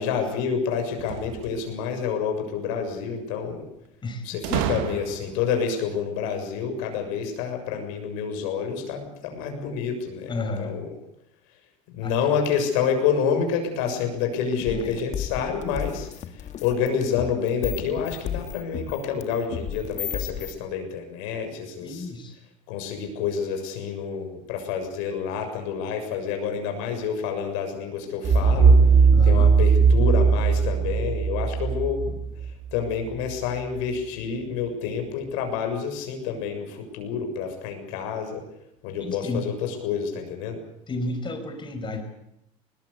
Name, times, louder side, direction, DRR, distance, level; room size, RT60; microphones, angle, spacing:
voice 1, 0.0-3.7 4.2-10.3 10.6-10.9 11.9-16.1 16.6-22.1 22.7-28.8 29.2-32.2 32.7-38.4 38.8-40.6, left 6 dB, 85° left, 4 dB, 6.8 m, -28 dB
sound 1, 0.9-2.0 4.4-5.5, right 10 dB, 80° right, 2.3 m, -31 dB
voice 2, 10.3-10.8 12.0-12.1 14.6-14.9 21.8-22.3 29.1-29.6 39.0-39.5 40.9-42.0, left 2 dB, 30° left, 6 dB, 5.8 m, -32 dB
sound 2, 14.5-20.5, left 9 dB, 45° left, 1.9 m, -34 dB
sound 3, 28.2-33.1, right 5 dB, 45° right, 3.7 m, -18 dB
21.0 x 20.5 x 8.3 m, 0.79 s
supercardioid pair, 115°, 16 cm